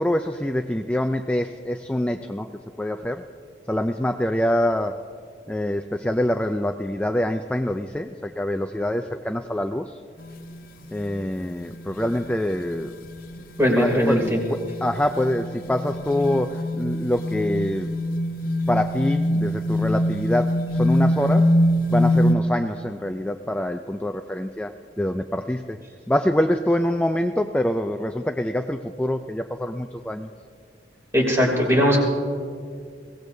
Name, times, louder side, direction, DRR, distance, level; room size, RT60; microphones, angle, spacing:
voice 1, 0.0-2.5 2.8-3.2 3.7-4.9 5.5-8.1 8.4-9.9 10.9-12.9 13.8-14.2 14.5-17.9 18.7-21.5 21.9-24.7 25.0-25.8 26.1-30.3, left 1 dB, 5° left, 6 dB, 0.3 m, -25 dB
sound 1, 10.2-10.5 10.9-11.1 11.6-11.7 12.0-12.2 12.6-22.3, left 1 dB, 50° left, 0.7 m, -24 dB
voice 2, 13.6-14.4 31.1-32.0, equal, 15° right, -1 dB, 2.9 m, -19 dB
22.0 x 17.5 x 2.7 m, 2.2 s
head